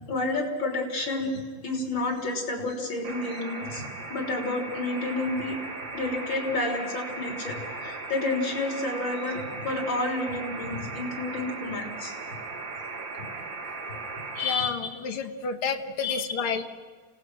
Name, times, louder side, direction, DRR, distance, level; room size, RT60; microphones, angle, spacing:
voice 1, 0.1-3.8 4.1-5.6 5.9-12.1 14.4-14.7 16.0-16.6, left 2 dB, 65° left, 2 dB, 4.3 m, -30 dB
sound 1, 3.0-14.5, right 3 dB, 65° right, 2.8 m, -37 dB
voice 2, 14.4-16.6, left 5 dB, 85° left, 3 dB, 2.2 m, -30 dB
29.5 x 17.0 x 6.2 m, 1.5 s
omnidirectional pair, 2.3 m